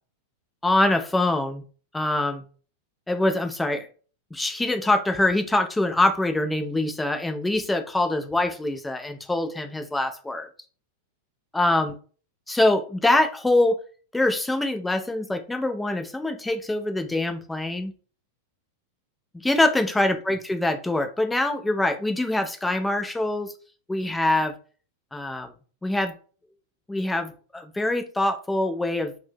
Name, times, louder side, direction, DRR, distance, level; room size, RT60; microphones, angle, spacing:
voice 1, 0.6-1.6 1.9-2.4 3.1-3.9 4.3-10.5 11.5-11.9 12.5-13.8 14.1-17.9 19.4-23.5 23.9-24.6 25.1-25.5 25.8-26.1 26.9-29.1, left 2 dB, 5° left, 7 dB, 0.4 m, -24 dB
2.6 x 2.1 x 3.5 m, 0.39 s
figure-of-eight pair, 90°, 0 cm